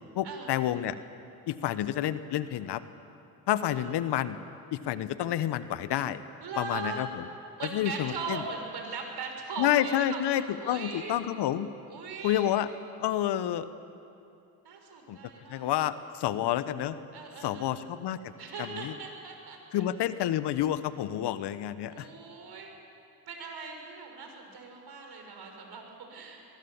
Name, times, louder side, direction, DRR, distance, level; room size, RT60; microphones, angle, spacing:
voice 1, 0.1-0.9 1.5-2.8 3.5-4.4 4.7-6.2 6.6-7.1 7.7-8.4 9.6-11.7 12.2-12.7 13.0-13.7 15.1-15.2 15.5-17.0 17.4-18.3 18.8-18.9 19.7-22.1, left 12 dB, 60° left, 14 dB, 1.2 m, -29 dB
voice 2, 6.4-7.1 7.6-11.2 11.9-12.6 14.6-15.7 17.1-17.7 18.4-19.8 21.9-22.7 23.3-26.5, right 4 dB, 55° right, 3 dB, 6.1 m, -40 dB
22.5 x 22.0 x 7.3 m, 2.6 s
hypercardioid pair, 55°, 46 cm